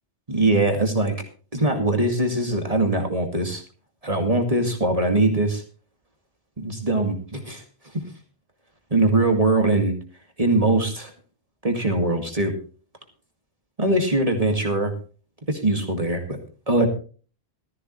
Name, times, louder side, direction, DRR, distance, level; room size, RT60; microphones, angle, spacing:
voice 1, 0.3-1.2 1.5-3.6 4.0-5.6 6.6-7.6 7.9-8.0 8.9-9.9 10.4-11.1 11.6-12.5 13.8-14.9 15.5-16.4 16.7-16.9, right 2 dB, 35° right, 3 dB, 2.2 m, -21 dB
15.0 x 14.0 x 3.1 m, 0.38 s
omnidirectional pair, 1.1 m